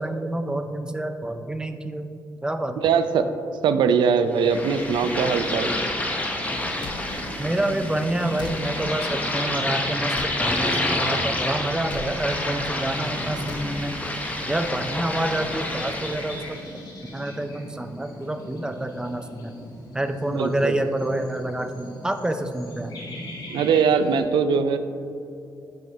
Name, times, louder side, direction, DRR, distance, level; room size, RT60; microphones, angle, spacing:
voice 1, 0.0-2.1 2.4-2.9 7.4-14.0 14.5-16.8 17.1-19.5 19.9-23.0, right 1 dB, 10° right, 8 dB, 0.3 m, -28 dB
voice 2, 2.8-3.3 3.6-5.7 20.3-20.7 23.5-24.8, right 6 dB, 80° right, 10 dB, 0.4 m, -21 dB
sound 1, 4.3-16.6, left 1 dB, 20° left, 0.7 m, -29 dB
sound 2, 4.5-24.2, left 1 dB, 60° left, 1.3 m, -40 dB
sound 3, 6.8-7.0 8.4-8.6 10.1-10.4 11.9-12.1 13.5-13.7, left 5 dB, 75° left, 0.5 m, -36 dB
7.5 x 4.8 x 2.7 m, 2.7 s
cardioid pair, 105°, 8 cm